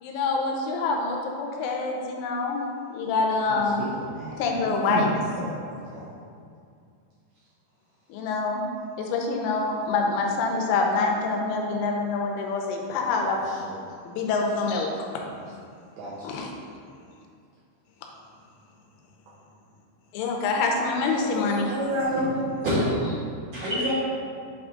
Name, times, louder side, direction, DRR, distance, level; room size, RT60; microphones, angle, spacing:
voice 1, 0.0-2.6 2.9-3.8 4.4-5.1 8.1-8.6 9.0-13.4 14.1-14.9 16.2-16.5 20.1-21.7, left 4 dB, 90° left, 1 dB, 3.2 m, -26 dB
voice 2, 3.3-5.5 5.8-6.1 13.2-13.8 15.2-15.5 16.0-16.3, right 2 dB, 80° right, -6 dB, 2.6 m, -34 dB
voice 3, 21.3-22.3 22.6-23.2 23.5-23.9, equal, 65° right, -12 dB, 2.3 m, -26 dB
8.2 x 3.6 x 3.7 m, 2.3 s
omnidirectional pair, 5.5 m